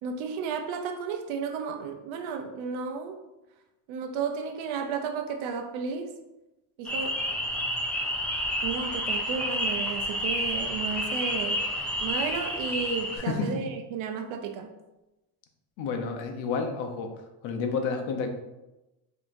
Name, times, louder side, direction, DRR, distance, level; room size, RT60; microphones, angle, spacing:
voice 1, 0.0-3.2 3.9-6.1 6.8-7.2 8.6-11.6 12.0-14.7, right 5 dB, 75° right, 5 dB, 0.6 m, -33 dB
sound 1, 6.8-13.2, equal, 5° left, 0.3 m, -30 dB
voice 2, 13.1-13.5 15.8-17.1 17.4-18.3, left 5 dB, 70° left, 5 dB, 0.8 m, -30 dB
5.5 x 2.9 x 2.6 m, 1.0 s
cardioid pair, 130°, 48 cm